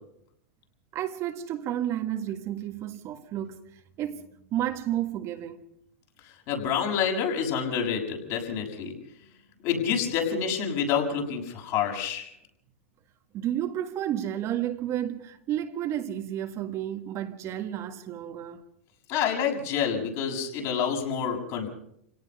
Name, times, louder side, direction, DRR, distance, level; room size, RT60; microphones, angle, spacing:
voice 1, 0.9-5.6 13.3-18.6, right 11 dB, 40° right, 1.7 m, -31 dB
voice 2, 6.5-8.9 9.6-12.3 19.1-21.7, left 7 dB, 50° left, 6.9 m, -28 dB
28.0 x 17.5 x 5.5 m
hypercardioid pair, 110°, 8 cm